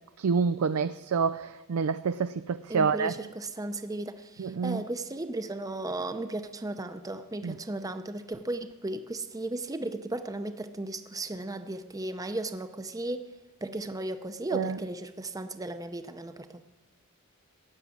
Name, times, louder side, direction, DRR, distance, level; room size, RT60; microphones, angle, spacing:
voice 1, 0.2-3.1 4.4-4.8 7.4-7.6 14.5-14.8, right 5 dB, 75° right, 0.4 m, -28 dB
voice 2, 2.7-13.3 13.6-16.6, right 2 dB, 15° right, 0.6 m, -35 dB
16.0 x 7.4 x 9.4 m
head